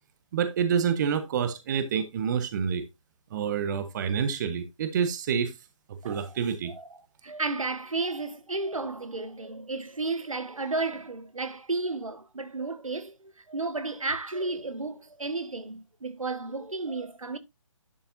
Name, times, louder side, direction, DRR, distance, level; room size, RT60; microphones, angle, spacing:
voice 1, 0.3-2.8 3.3-5.5 6.0-6.7, right 7 dB, 35° right, 1.0 m, -27 dB
voice 2, 6.0-6.4 6.7-6.9 7.2-17.4, right 3 dB, 85° right, 1.4 m, -33 dB
11.0 x 5.7 x 2.6 m
figure-of-eight pair, 145°, 17 cm